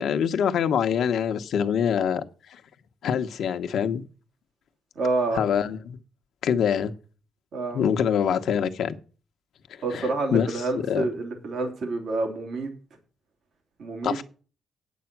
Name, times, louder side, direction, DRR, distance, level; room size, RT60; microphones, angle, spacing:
voice 1, 0.0-2.2 3.0-4.1 5.3-6.0 6.4-6.9 7.7-9.0 9.9-10.5 10.9-11.0 14.0-14.2, left 8 dB, 80° left, 1.1 m, -24 dB
voice 2, 4.9-5.4 7.5-7.8 9.8-12.7 13.8-14.2, right 3 dB, 70° right, 2.8 m, -28 dB
8.7 x 8.3 x 6.0 m
cardioid pair, 90°, 0 cm